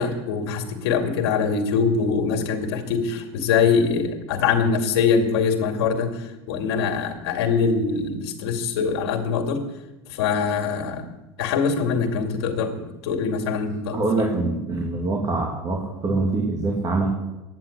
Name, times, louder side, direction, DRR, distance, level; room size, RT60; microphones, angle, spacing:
voice 1, 0.0-9.6 10.1-11.1 11.4-14.3, left 5 dB, 85° left, 3 dB, 2.3 m, -23 dB
voice 2, 13.9-17.1, right 3 dB, 30° right, -1 dB, 2.8 m, -24 dB
11.0 x 9.3 x 8.5 m, 1.0 s
supercardioid pair, 115°, 14 cm